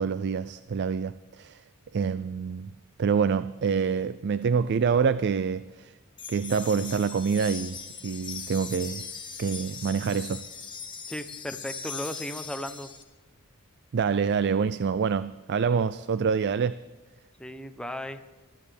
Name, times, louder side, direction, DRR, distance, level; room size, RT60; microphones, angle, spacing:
voice 1, 0.0-1.6 1.9-2.7 3.0-5.9 6.3-9.0 9.4-10.4 13.9-16.8, right 6 dB, 55° right, 0.4 m, -26 dB
sound 1, 6.2-13.0, left 6 dB, 20° left, 1.4 m, -40 dB
voice 2, 11.1-12.9 17.4-18.2, left 1 dB, 5° left, 0.8 m, -36 dB
21.0 x 13.5 x 3.5 m
head